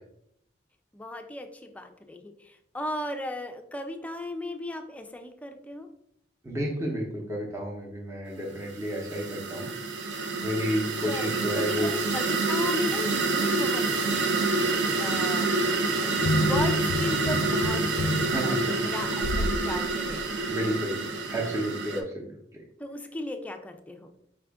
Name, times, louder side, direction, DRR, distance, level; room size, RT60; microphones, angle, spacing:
voice 1, 0.9-5.9 11.1-15.5 16.0-16.1 16.4-20.3 21.9-22.1 22.8-24.1, left 1 dB, 10° left, 5 dB, 0.4 m, -36 dB
voice 2, 6.4-9.7 10.4-12.0 18.3-18.7 20.5-21.0 21.3-22.0 22.5-22.6, equal, 15° right, -2 dB, 0.7 m, -31 dB
sound 1, 8.6-22.0, right 3 dB, 65° right, 0.5 m, -27 dB
sound 2, 16.2-19.6 20.1-20.2, left 1 dB, 85° left, 0.4 m, -29 dB
4.9 x 2.4 x 3.4 m, 0.72 s
head